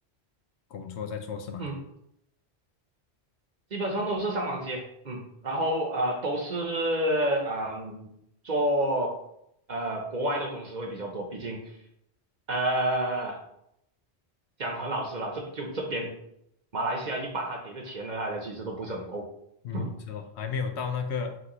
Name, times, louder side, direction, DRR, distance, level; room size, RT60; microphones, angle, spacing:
voice 1, 0.7-1.7 19.6-21.4, left 6 dB, 75° left, 6 dB, 0.9 m, -33 dB
voice 2, 3.7-8.1 8.4-9.2 9.7-11.6 12.5-13.4 14.6-16.1 16.7-19.3 19.7-19.9, right 1 dB, 45° right, 1 dB, 0.9 m, -30 dB
5.9 x 3.1 x 2.9 m, 0.77 s
omnidirectional pair, 1.1 m